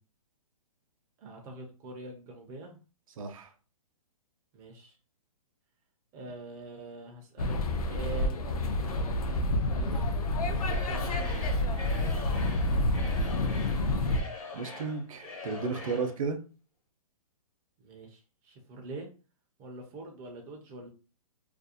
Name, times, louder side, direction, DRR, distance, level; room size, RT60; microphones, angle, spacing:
voice 1, 1.2-2.8 4.5-4.9 6.1-10.1 10.5-13.4 15.7-16.0 17.8-19.1 19.6-20.9, right 2 dB, 15° right, 0.3 m, -45 dB
voice 2, 3.2-3.5 14.5-16.4, right 4 dB, 65° right, 0.6 m, -33 dB
sound 1, 7.4-14.2, left 1 dB, 85° left, 0.5 m, -29 dB
Singing / Crowd, 10.5-16.2, left 3 dB, 65° left, 1.0 m, -43 dB
2.5 x 2.0 x 2.6 m
hypercardioid pair, 140°, 19 cm